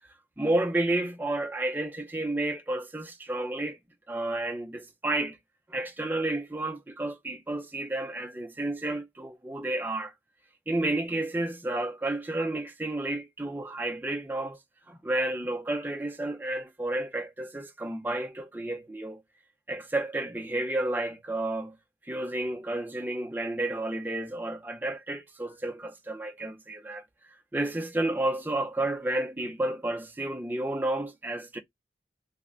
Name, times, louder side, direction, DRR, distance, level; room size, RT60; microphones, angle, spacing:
voice 1, 0.4-3.8 4.1-5.4 5.7-10.1 10.7-14.6 14.9-19.2 19.7-21.8 22.0-27.0 27.5-31.6, right 2 dB, 10° right, 0.5 m, -31 dB
3.2 x 2.1 x 3.6 m
head